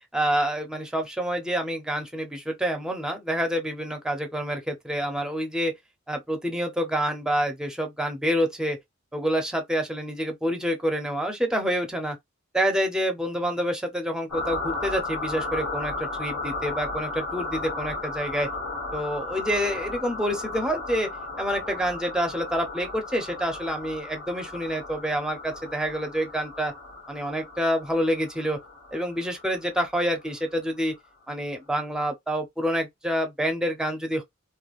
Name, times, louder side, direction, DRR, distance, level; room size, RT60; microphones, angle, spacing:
voice 1, 0.1-5.7 6.1-8.8 9.1-12.2 12.5-18.5 18.9-21.1 21.4-26.7 27.1-28.6 28.9-30.9 31.3-34.2, equal, 5° right, 0.6 m, -27 dB
sound 1, 14.3-30.6, left 2 dB, 75° left, 1.3 m, -35 dB
3.2 x 2.2 x 2.4 m
head